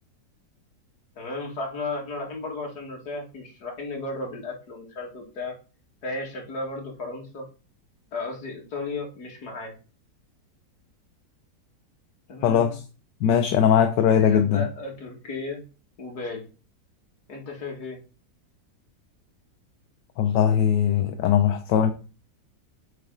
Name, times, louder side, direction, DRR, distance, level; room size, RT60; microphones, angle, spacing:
voice 1, 1.2-5.5 6.0-7.5 8.1-9.8 12.3-12.7 14.2-15.6 16.0-16.4 17.3-18.0, left 3 dB, 60° left, 2.5 m, -34 dB
voice 2, 12.4-12.8 13.2-14.6 20.2-21.9, left 8 dB, 75° left, 1.3 m, -20 dB
8.1 x 4.3 x 3.8 m
omnidirectional pair, 2.0 m